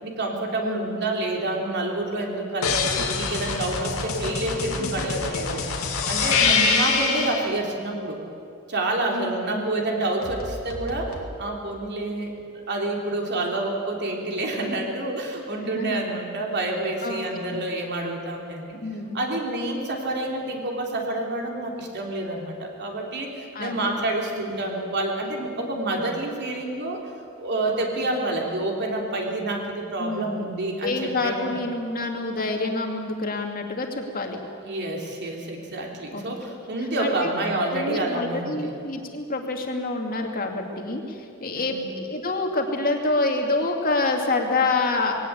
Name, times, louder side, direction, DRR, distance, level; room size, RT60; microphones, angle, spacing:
voice 1, 0.0-5.6 6.1-8.2 8.7-18.8 19.1-27.0 27.4-31.5 34.6-38.7 41.5-41.9, right 2 dB, 50° right, 0 dB, 3.3 m, -28 dB
sound 1, 2.6-7.5 10.2-11.3, left 5 dB, 70° left, 2.3 m, -25 dB
voice 2, 9.1-9.7 15.6-16.0 17.0-17.6 18.8-19.2 23.5-23.8 30.0-30.5 30.8-34.4 36.1-36.3 37.0-37.3 37.7-45.1, left 2 dB, 40° left, 2 dB, 2.5 m, -27 dB
20.5 x 17.5 x 8.5 m, 2.5 s
head